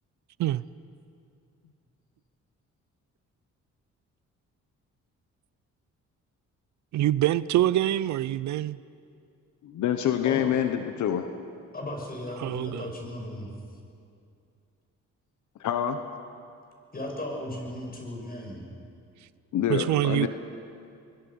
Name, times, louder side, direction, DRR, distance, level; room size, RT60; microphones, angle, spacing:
voice 1, 6.9-8.8 12.4-12.9 19.7-20.3, right 13 dB, 70° right, 18 dB, 0.6 m, -25 dB
voice 2, 9.6-11.3 15.6-16.0 19.5-20.3, left 9 dB, 75° left, 7 dB, 1.2 m, -26 dB
voice 3, 10.2-10.5 11.7-13.5 16.9-18.6, left 1 dB, 30° left, 1 dB, 5.9 m, -36 dB
24.5 x 21.5 x 5.6 m, 2.4 s
cardioid pair, 90°, 30 cm